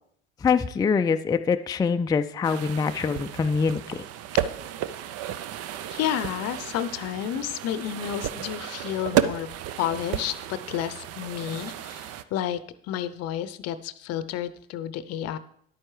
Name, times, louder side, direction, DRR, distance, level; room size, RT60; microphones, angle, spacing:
voice 1, 0.4-4.0, left 5 dB, 15° left, 8 dB, 0.4 m, -24 dB
sound 1, 2.4-12.2, right 11 dB, 50° right, 0.6 m, -32 dB
voice 2, 5.9-9.5 9.8-15.4, left 11 dB, 55° left, 14 dB, 0.7 m, -31 dB
10.5 x 8.8 x 3.2 m, 0.66 s
hypercardioid pair, 60°, 31 cm